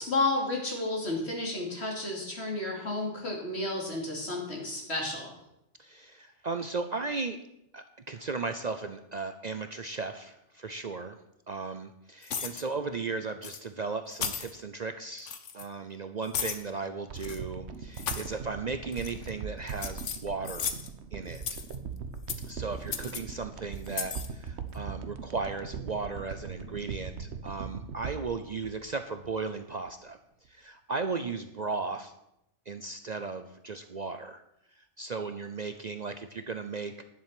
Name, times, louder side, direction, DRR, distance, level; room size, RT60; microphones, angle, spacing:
voice 1, 0.0-5.3, left 2 dB, 65° left, -1 dB, 3.2 m, -31 dB
voice 2, 5.8-7.4 7.7-11.2 11.5-20.7 21.1-21.6 22.4-30.2 30.5-32.1 32.7-34.4 34.8-37.0, right 4 dB, 45° right, 8 dB, 0.6 m, -36 dB
sound 1, 12.2-12.6 13.4-13.6 14.1-14.5 15.2-15.7 16.3-16.6 17.2-17.4 17.9-18.3 18.9-19.3 19.7-20.9 21.4-21.8 22.3-22.5 22.9-23.2 23.9-24.3, left 7 dB, 85° left, 1.4 m, -35 dB
sound 2, 17.1-29.6 29.9-30.0, right 6 dB, 70° right, 1.1 m, -40 dB
11.0 x 7.3 x 7.7 m, 0.82 s
omnidirectional pair, 1.2 m